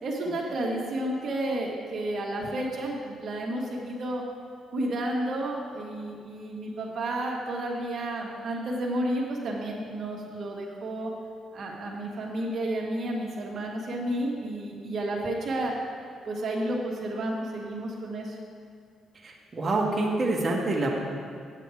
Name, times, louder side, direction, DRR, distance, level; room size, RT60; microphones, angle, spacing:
voice 1, 0.0-4.2 4.7-11.1 11.5-15.7 16.2-18.4, right 1 dB, 60° right, -2 dB, 1.4 m, -31 dB
voice 2, 19.2-21.0, right 2 dB, 30° right, -3 dB, 1.4 m, -26 dB
8.5 x 8.2 x 4.8 m, 2.2 s
cardioid pair, 90°, 0 cm